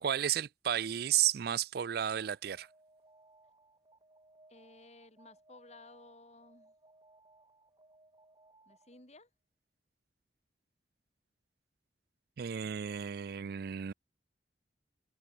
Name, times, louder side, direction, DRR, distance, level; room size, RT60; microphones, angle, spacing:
voice 1, 0.0-2.7 12.4-13.9, right 10 dB, 55° right, 0.4 m, -32 dB
Alarm, 2.1-9.2, right 2 dB, 25° right, 5.6 m, -64 dB
voice 2, 4.5-6.7 8.7-9.3, left 2 dB, 40° left, 5.2 m, -56 dB
open air
head